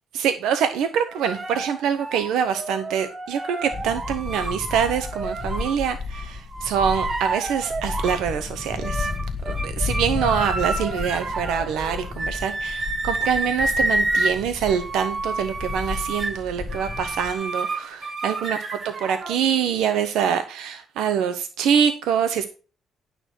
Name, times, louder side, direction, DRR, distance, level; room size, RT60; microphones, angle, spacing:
voice 1, 0.1-9.1 9.5-18.6 18.8-22.5, right 8 dB, 90° right, 9 dB, 0.9 m, -25 dB
sound 1, 1.1-5.8 6.1-8.3 8.6-19.4, right 2 dB, 35° right, 1.7 m, -29 dB
sound 2, 3.7-17.4, left 4 dB, 25° left, 1.1 m, -33 dB
11.0 x 6.8 x 4.5 m, 0.36 s
cardioid pair, 90°, 0 cm